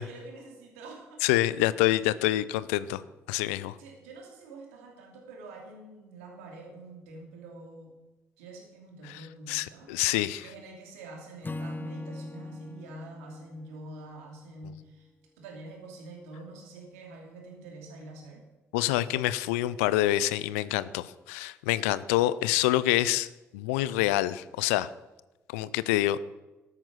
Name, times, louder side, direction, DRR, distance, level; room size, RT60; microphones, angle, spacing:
voice 1, 0.0-1.2 3.8-7.9 8.4-9.9 10.4-15.1 15.4-18.4, right 2 dB, 85° right, 1 dB, 2.7 m, -46 dB
voice 2, 1.2-3.0 3.3-3.8 9.0-9.2 9.5-10.5 18.7-24.9 25.5-26.2, left 15 dB, 80° left, 17 dB, 0.5 m, -27 dB
Acoustic guitar / Strum, 11.4-14.8, left 2 dB, 25° left, 0.7 m, -40 dB
13.5 x 9.6 x 6.3 m, 1.1 s
hypercardioid pair, 45°, 7 cm